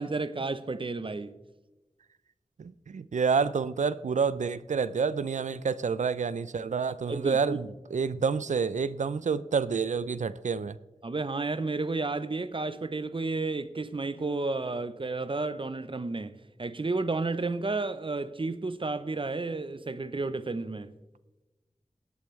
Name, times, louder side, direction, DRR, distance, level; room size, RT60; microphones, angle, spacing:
voice 1, 0.0-1.3 7.1-7.6 11.0-16.3 16.6-20.9, right 3 dB, 45° right, 0.7 m, -32 dB
voice 2, 2.6-10.8, right 5 dB, 80° right, 0.4 m, -28 dB
18.5 x 8.1 x 3.2 m
wide cardioid pair, 45°, 12 cm